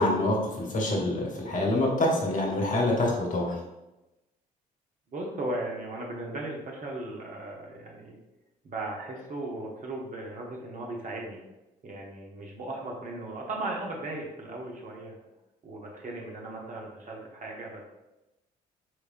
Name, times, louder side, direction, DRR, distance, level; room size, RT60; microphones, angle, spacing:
voice 1, 0.0-3.6, left 1 dB, 40° left, -1 dB, 1.1 m, -26 dB
voice 2, 5.1-8.2 8.6-11.4 11.8-15.2 15.6-18.0, right 2 dB, 40° right, -1 dB, 1.0 m, -37 dB
4.7 x 3.0 x 2.5 m, 0.97 s
figure-of-eight pair, 45°, 21 cm